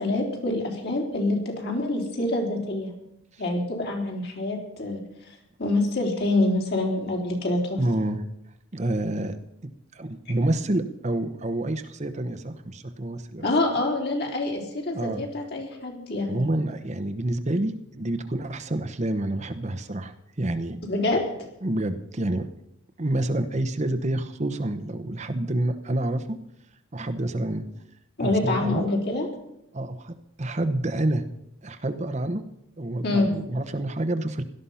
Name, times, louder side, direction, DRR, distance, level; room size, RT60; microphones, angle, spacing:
voice 1, 0.0-2.9 3.4-5.0 5.3-7.8 13.4-16.4 20.9-21.2 28.2-29.3 33.0-33.3, left 2 dB, 50° left, 1 dB, 3.7 m, -26 dB
voice 2, 7.8-8.2 8.7-9.4 9.9-13.4 14.9-15.2 16.3-20.8 21.6-22.5 23.0-26.4 26.9-27.6 28.2-28.9 29.7-31.2 31.6-32.4 32.8-34.4, right 1 dB, 35° right, 8 dB, 0.9 m, -28 dB
17.0 x 12.5 x 5.7 m, 0.80 s
head